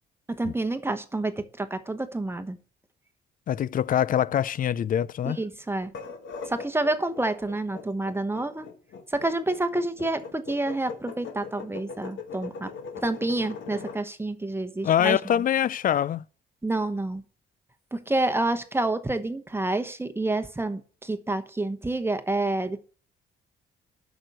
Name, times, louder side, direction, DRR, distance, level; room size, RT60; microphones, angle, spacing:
voice 1, 0.3-2.6 5.2-5.9 6.4-8.7 9.1-12.7 13.0-15.4 16.6-17.2 17.9-22.8, right 2 dB, 10° right, 1.0 m, -28 dB
voice 2, 3.5-5.4 14.8-16.2, left 10 dB, 45° left, 0.4 m, -24 dB
sound 1, 5.8-14.0, left 5 dB, 70° left, 1.4 m, -40 dB
8.8 x 6.2 x 6.7 m
cardioid pair, 90°, 20 cm